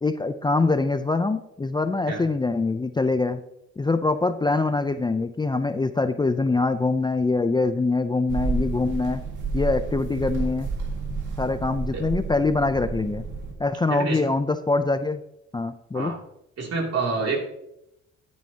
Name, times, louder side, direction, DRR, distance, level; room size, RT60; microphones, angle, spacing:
voice 1, 0.0-3.4 3.8-9.2 9.5-10.7 11.4-13.2 13.6-15.2 15.5-16.2, left 3 dB, 15° left, 10 dB, 0.5 m, -24 dB
sound 1, 8.3-13.5, right 4 dB, 75° right, 2.1 m, -30 dB
voice 2, 16.6-17.6, right 3 dB, 55° right, 0 dB, 2.8 m, -27 dB
13.5 x 9.5 x 2.8 m, 0.82 s
cardioid pair, 90°, 30 cm